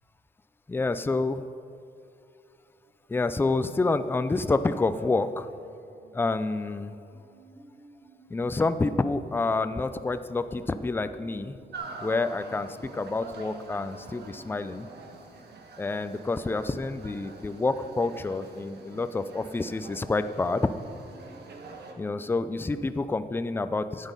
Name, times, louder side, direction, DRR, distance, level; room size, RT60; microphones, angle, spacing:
voice 1, 0.7-1.5 3.1-5.5 6.1-7.0 8.3-11.6 12.0-14.9 15.8-20.7 22.0-24.1, left 3 dB, 15° left, 11 dB, 0.3 m, -28 dB
sound 1, 7.0-22.2, right 2 dB, 30° right, 0.8 m, -57 dB
sound 2, 11.7-21.9, right 3 dB, 85° right, 1.2 m, -46 dB
13.0 x 8.2 x 5.3 m, 2.5 s
wide cardioid pair, 155°, 17 cm